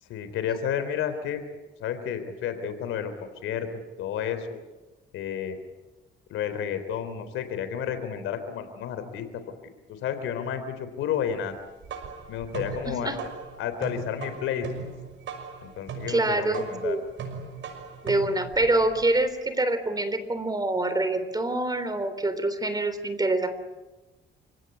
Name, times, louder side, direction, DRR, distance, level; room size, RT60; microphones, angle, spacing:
voice 1, 0.1-1.4 1.8-4.6 5.1-5.6 6.3-9.4 10.0-11.6 12.3-13.1 13.6-14.9 15.6-17.0, left 8 dB, 90° left, 9 dB, 3.7 m, -31 dB
sound 1, 11.6-19.3, right 5 dB, 70° right, 6.0 m, -39 dB
voice 2, 12.9-13.2 16.1-17.0 18.0-23.5, right 2 dB, 20° right, 11 dB, 3.5 m, -26 dB
29.0 x 17.5 x 9.8 m, 1.1 s
cardioid pair, 90°, 20 cm